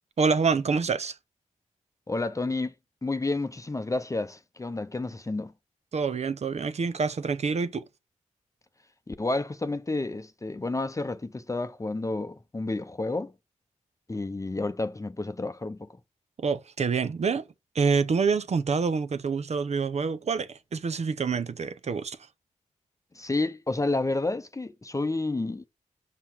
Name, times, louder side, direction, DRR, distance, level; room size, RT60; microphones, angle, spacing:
voice 1, 0.2-1.2 5.9-7.8 16.4-17.4 17.7-22.2, right 5 dB, 60° right, 0.7 m, -26 dB
voice 2, 2.1-2.7 3.0-5.5 9.1-13.3 14.1-15.8 23.1-25.6, left 2 dB, 25° left, 0.7 m, -30 dB
5.6 x 5.6 x 4.6 m
cardioid pair, 50°, 13 cm